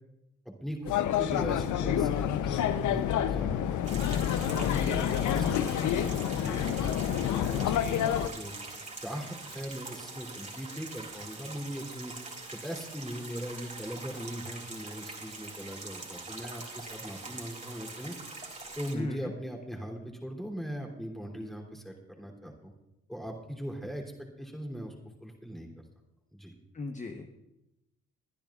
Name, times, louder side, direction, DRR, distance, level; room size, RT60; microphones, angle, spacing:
voice 1, 0.4-4.0 4.4-8.5 9.0-12.1 12.6-18.1 18.8-22.7 23.1-24.9 25.2-25.7 26.3-26.5, equal, ahead, 0 dB, 3.0 m, -40 dB
sound 1, 0.9-8.3, left 10 dB, 75° left, 0.7 m, -28 dB
sound 2, 3.8-18.9, right 3 dB, 25° right, 3.2 m, -44 dB
voice 2, 4.7-5.0 18.9-19.3 26.7-27.3, left 3 dB, 25° left, 5 dB, 0.9 m, -37 dB
23.0 x 10.5 x 2.4 m, 0.93 s
cardioid pair, 90°, 30 cm